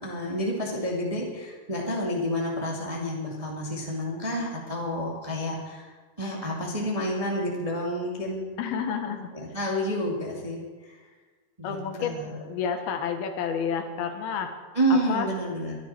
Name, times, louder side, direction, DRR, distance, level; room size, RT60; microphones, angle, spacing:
voice 1, 0.0-8.5 9.3-11.0 11.6-12.3 14.7-15.8, equal, 10° right, -3 dB, 1.7 m, -29 dB
voice 2, 8.6-9.3 11.6-14.5 14.9-15.3, left 6 dB, 75° left, 6 dB, 3.0 m, -30 dB
23.5 x 11.5 x 4.4 m, 1.4 s
omnidirectional pair, 4.5 m